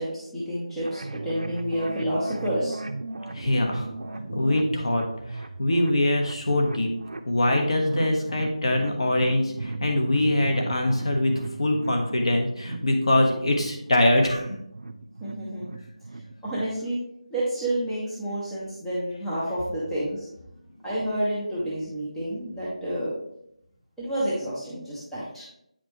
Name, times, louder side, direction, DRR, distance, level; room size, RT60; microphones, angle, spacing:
voice 1, 0.0-2.8 15.2-15.7 16.4-17.0 17.3-20.3 20.8-23.1 24.0-25.4, right 1 dB, ahead, -11 dB, 0.5 m, -29 dB
sound 1, 0.8-16.7, right 2 dB, 70° right, 0.6 m, -37 dB
voice 2, 3.3-3.9 4.3-6.9 7.3-11.3 11.6-14.6, left 1 dB, 50° left, 2 dB, 1.4 m, -23 dB
8.6 x 5.2 x 3.0 m, 0.77 s
figure-of-eight pair, 180°, 4 cm